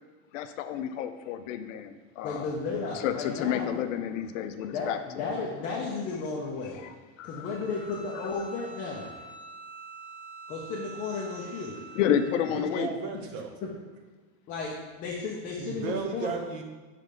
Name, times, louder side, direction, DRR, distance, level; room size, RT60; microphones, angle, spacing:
voice 1, 0.3-2.5 2.9-5.4 6.7-7.6 8.1-8.3 11.9-12.9, left 9 dB, 75° left, 9 dB, 0.6 m, -31 dB
voice 2, 2.2-3.7 4.7-6.8 7.2-9.1 10.5-11.8 13.6-13.7 14.5-16.4, left 4 dB, 20° left, -3 dB, 0.4 m, -34 dB
Bowed string instrument, 7.4-12.7, right 4 dB, 15° right, 1.1 m, -46 dB
voice 3, 12.5-13.5 15.6-16.6, right 5 dB, 55° right, 3 dB, 1.0 m, -34 dB
6.3 x 3.3 x 5.1 m, 1.3 s
supercardioid pair, 170°, 39 cm